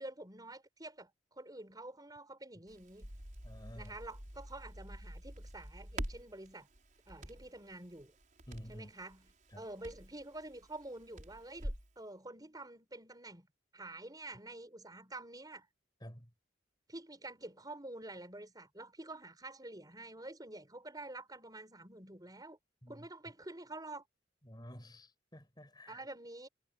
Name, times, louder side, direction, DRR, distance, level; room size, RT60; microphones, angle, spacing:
voice 1, 0.0-3.1 3.7-6.7 7.1-8.1 8.7-9.2 9.5-13.5 13.7-15.7 16.9-22.6 22.9-24.0 25.9-26.5, right 2 dB, 20° right, 6.0 m, -48 dB
Crackle, 2.7-11.9, right 1 dB, 45° right, 6.1 m, -47 dB
voice 2, 3.4-3.9 8.5-8.9 9.5-9.7 16.0-16.3 22.8-23.1 24.4-26.0, equal, 25° left, 7.5 m, -50 dB
head